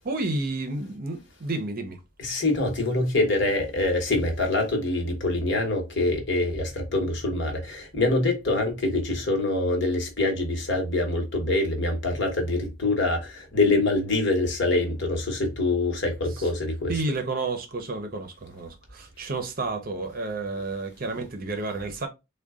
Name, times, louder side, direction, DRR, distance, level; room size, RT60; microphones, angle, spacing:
voice 1, 0.0-2.0 16.9-22.1, right 2 dB, 40° right, 0.6 m, -31 dB
voice 2, 2.2-16.9, left 2 dB, 55° left, 1.1 m, -25 dB
3.8 x 2.2 x 3.5 m
head